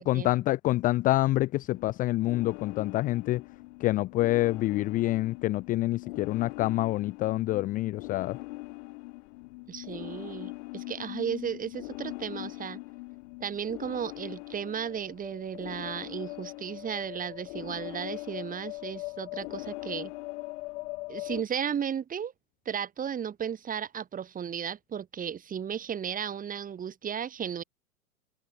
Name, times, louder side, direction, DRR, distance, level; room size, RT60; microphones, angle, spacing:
voice 1, 0.0-3.4 3.8-8.4, left 17 dB, 20° left, 0.7 m, -27 dB
sound 1, 1.7-21.4, left 24 dB, 45° left, 6.6 m, -41 dB
voice 2, 9.7-12.8 13.4-20.1 21.1-22.3 22.7-27.6, right 8 dB, 15° right, 6.2 m, -35 dB
hypercardioid pair, 130°, 46 cm